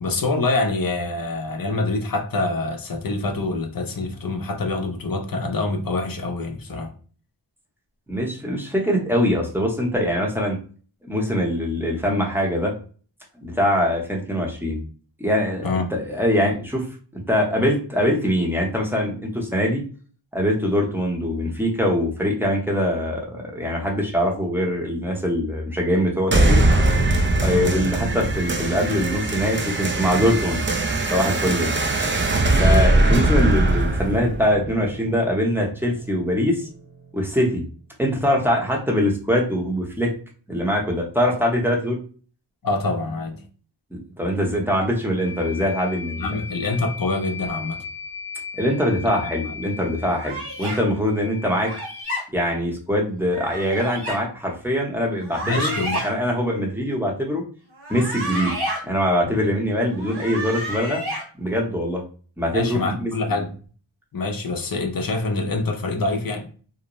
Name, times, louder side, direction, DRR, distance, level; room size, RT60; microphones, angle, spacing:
voice 1, 0.0-6.9 15.6-15.9 27.4-27.7 42.6-43.4 46.2-47.8 49.5-49.6 55.4-56.2 59.2-59.4 62.5-63.5 64.1-66.5, left 2 dB, 45° left, 0.6 m, -25 dB
voice 2, 8.1-10.6 11.1-12.7 13.4-14.8 15.2-16.8 17.3-19.8 20.3-26.7 27.4-30.6 31.1-31.8 32.5-36.7 37.1-37.6 38.0-40.1 40.5-42.0 43.9-46.3 48.5-51.7 52.3-55.7 56.0-57.4 57.9-58.5 58.8-61.0 61.4-62.0 62.4-63.1, equal, 5° right, 0.7 m, -23 dB
sound 1, 26.3-35.3, right 2 dB, 25° right, 0.4 m, -20 dB
sound 2, 45.2-52.0, left 5 dB, 20° left, 1.1 m, -37 dB
sound 3, 50.2-50.8 51.6-52.2 53.3-54.2 55.2-56.1 57.7-58.8 59.9-61.2, right 1 dB, 55° right, 1.2 m, -30 dB
2.5 x 2.0 x 2.9 m
wide cardioid pair, 60°, 48 cm